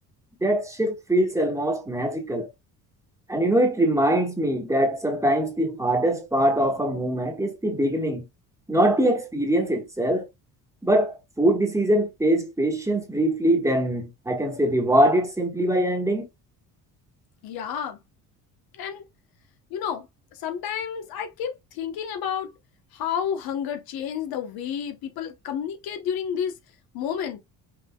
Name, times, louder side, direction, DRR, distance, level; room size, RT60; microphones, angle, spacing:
voice 1, 0.4-2.5 3.3-8.3 8.7-10.2 10.8-16.3, right 1 dB, 10° right, 1.3 m, -23 dB
voice 2, 17.4-18.0 18.7-19.1 19.7-22.5 22.9-26.5 26.9-27.4, left 8 dB, 75° left, 1.1 m, -30 dB
5.8 x 3.6 x 2.2 m
cardioid pair, 115°, 36 cm